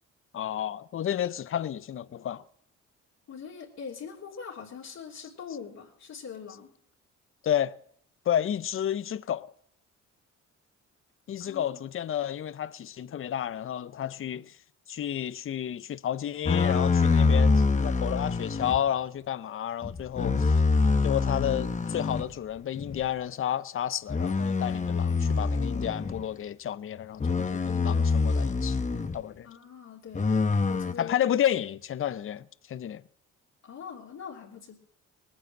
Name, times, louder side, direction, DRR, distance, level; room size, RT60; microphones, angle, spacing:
voice 1, 0.3-2.4 5.2-5.3 7.4-7.7 8.3-9.5 11.3-14.6 14.9-20.6 21.0-28.8 29.1-29.5 31.0-33.0, left 10 dB, 45° left, 0.6 m, -31 dB
voice 2, 3.3-6.7 11.4-11.9 29.4-31.2 33.6-34.8, left 6 dB, 60° left, 3.3 m, -42 dB
sound 1, 16.5-18.8 19.8-22.3 22.8-23.0 24.1-26.2 27.2-29.2 30.1-30.9, left 4 dB, 25° left, 0.9 m, -25 dB
19.5 x 9.6 x 7.4 m
cardioid pair, 90°, 30 cm